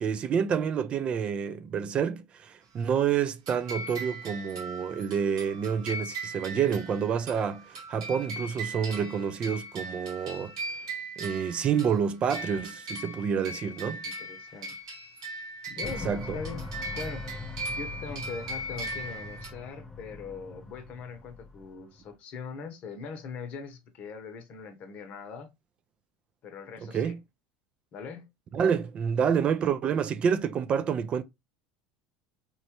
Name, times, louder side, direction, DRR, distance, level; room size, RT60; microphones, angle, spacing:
voice 1, 0.0-10.5 11.2-14.0 16.1-16.4 26.9-27.2 28.5-31.2, right 7 dB, 40° right, 0.3 m, -28 dB
sound 1, 3.5-19.5, right 1 dB, 85° right, 1.1 m, -39 dB
voice 2, 14.0-14.8 15.7-16.7 16.9-17.3 17.8-25.5 26.4-27.1 27.9-28.3, left 5 dB, 55° left, 0.8 m, -41 dB
sound 2, 15.8-22.1, left 2 dB, 15° left, 0.6 m, -42 dB
2.9 x 2.3 x 2.8 m
hypercardioid pair, 85°, 3 cm